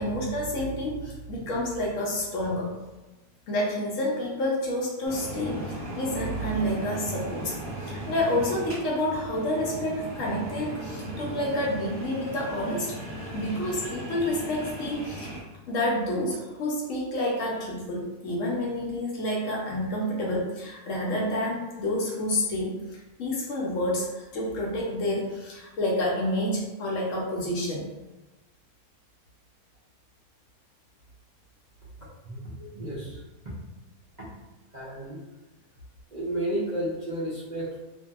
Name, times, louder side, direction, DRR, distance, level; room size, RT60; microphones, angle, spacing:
voice 1, 0.0-2.7 3.5-7.5 7.8-13.0 13.3-15.3 15.7-27.9 32.6-32.7, left 1 dB, 65° left, -3 dB, 0.9 m, -29 dB
sound 1, 5.1-15.4, right 1 dB, 40° right, 1.0 m, -37 dB
voice 2, 32.2-33.5 34.2-34.3 34.7-35.2 36.1-37.8, right 1 dB, 70° right, -9 dB, 0.4 m, -33 dB
2.7 x 2.6 x 2.3 m, 1.1 s
omnidirectional pair, 1.7 m